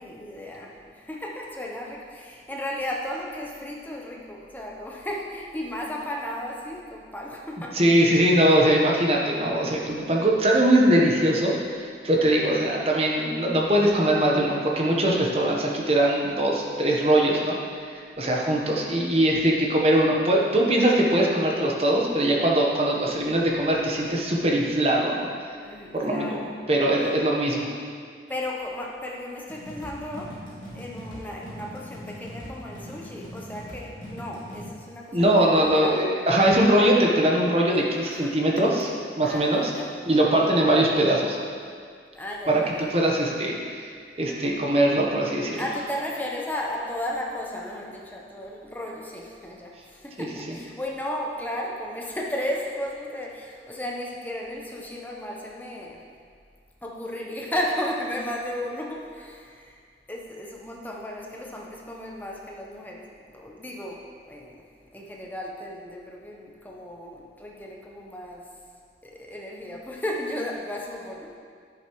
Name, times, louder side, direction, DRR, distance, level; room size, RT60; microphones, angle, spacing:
voice 1, 0.0-7.9 18.5-18.9 25.6-26.5 28.3-30.5 30.7-36.1 38.0-38.4 39.2-40.0 42.1-42.9 45.6-56.1 56.8-59.8 60.1-64.6 64.9-68.6 69.0-71.4, left 1 dB, 10° left, -2 dB, 0.8 m, -34 dB
voice 2, 7.7-17.6 18.2-25.3 25.9-26.4 26.7-27.7 35.1-38.9 39.2-39.7 40.1-41.4 42.5-43.9 44.2-45.6 50.2-50.3, right 1 dB, 35° right, -2 dB, 1.0 m, -21 dB
sound 1, 29.5-34.7, equal, 25° left, 2.3 m, -41 dB
10.0 x 7.5 x 3.1 m, 2.1 s
head